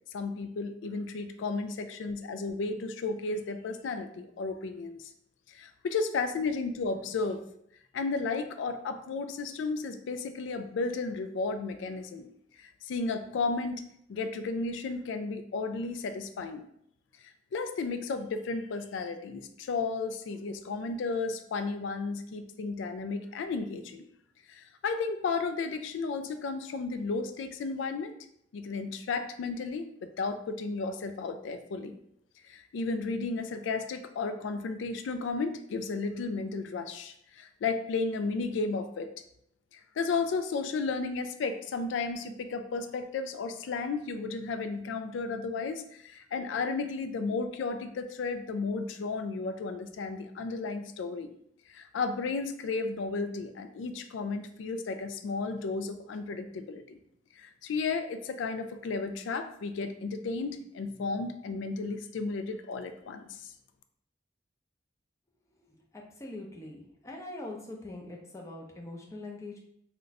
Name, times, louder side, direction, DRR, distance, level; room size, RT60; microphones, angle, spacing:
voice 1, 0.1-5.1 5.5-7.4 7.9-12.3 12.6-16.6 17.5-24.1 24.5-28.1 28.5-32.0 32.4-39.1 39.7-51.3 51.7-57.0 57.4-63.5, left 4 dB, 70° left, 9 dB, 0.3 m, -33 dB
voice 2, 65.6-69.6, left 2 dB, 15° left, -1 dB, 0.5 m, -43 dB
2.5 x 2.2 x 4.0 m, 0.72 s
head